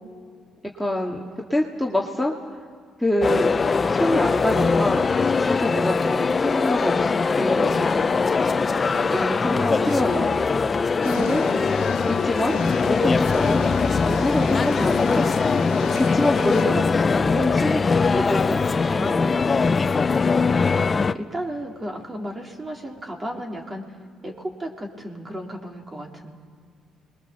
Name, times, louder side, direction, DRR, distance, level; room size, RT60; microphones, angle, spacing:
voice 1, 0.8-1.2 1.5-2.6 3.0-5.1 5.4-7.9 9.1-10.3 11.0-11.4 12.1-13.6 14.0-15.3 16.1-18.6 18.9-19.5, left 1 dB, ahead, -2 dB, 2.0 m, -26 dB
sound 1, 3.2-21.1, left 4 dB, 35° left, 0.7 m, -21 dB
sound 2, 7.4-17.1, equal, 85° right, 7.2 m, -41 dB
sound 3, 11.0-16.6, left 10 dB, 90° left, 1.0 m, -36 dB
voice 2, 18.1-18.6 20.3-23.8 24.2-26.3, equal, 25° right, 1 dB, 3.4 m, -34 dB
28.0 x 21.5 x 7.0 m, 2.1 s
supercardioid pair, 75°, 0 cm